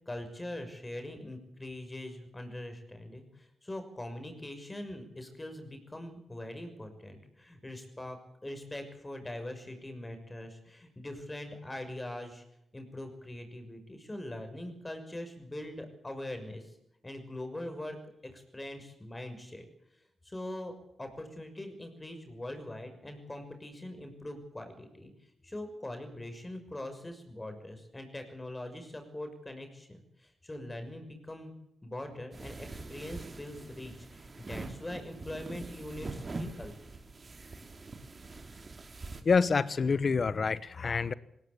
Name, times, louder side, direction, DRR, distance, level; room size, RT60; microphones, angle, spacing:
voice 1, 0.1-12.4 12.7-16.7 17.0-18.0 18.3-19.6 20.2-20.7 21.0-25.1 25.4-31.5 31.8-36.7, left 1 dB, 25° left, 7 dB, 6.2 m, -42 dB
sound 1, 32.3-39.2, right 3 dB, 45° right, 3.0 m, -44 dB
voice 2, 39.2-41.1, left 5 dB, 55° left, 17 dB, 1.0 m, -27 dB
19.5 x 18.0 x 8.3 m, 0.80 s
cardioid pair, 50°, 0 cm